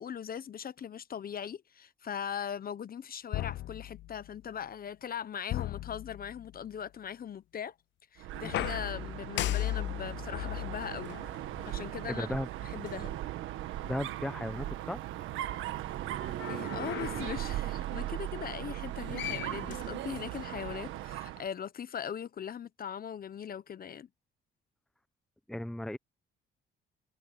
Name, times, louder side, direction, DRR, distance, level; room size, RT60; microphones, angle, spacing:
voice 1, 0.0-7.7 8.1-11.2 11.6-12.3 12.6-13.2 16.5-24.1, left 8 dB, 50° left, 1.0 m, -40 dB
sound 1, 3.3-4.4 5.5-6.6 8.4-12.0 12.9-13.0 16.2-17.5 18.9-19.0 19.2-20.4, left 15 dB, 65° left, 0.4 m, -37 dB
Dog, 8.2-21.5, right 13 dB, 90° right, 1.5 m, -39 dB
voice 2, 12.1-12.5 13.8-15.0 25.5-26.0, left 1 dB, ahead, 0.8 m, -35 dB
Laughter, 14.9-21.2, right 13 dB, 65° right, 0.5 m, -44 dB
cardioid pair, 90°, 20 cm